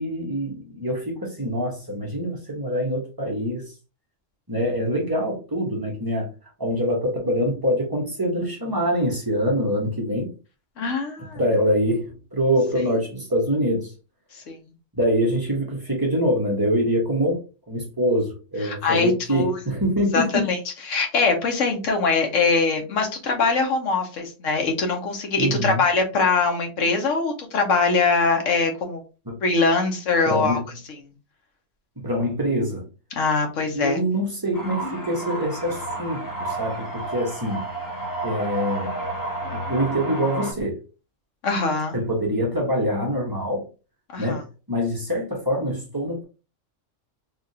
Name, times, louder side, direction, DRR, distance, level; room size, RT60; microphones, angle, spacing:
voice 1, 0.0-3.7 4.5-6.3 6.6-10.3 11.3-13.9 14.9-17.4 17.7-20.5 25.4-25.8 29.3-29.4 30.2-30.7 32.0-32.9 33.7-37.7 38.2-38.9 39.5-40.8 41.9-43.7 44.2-46.2, equal, 20° right, 0.8 m, -24 dB
voice 2, 10.8-11.4 14.3-14.6 18.6-19.5 20.1-20.6 20.9-29.0 29.4-30.6 33.1-34.0 41.4-42.0 44.1-44.4, left 4 dB, 75° left, 1.2 m, -22 dB
sound 1, 34.5-40.5, right 2 dB, 30° left, 0.4 m, -31 dB
3.4 x 2.4 x 2.7 m
omnidirectional pair, 1.3 m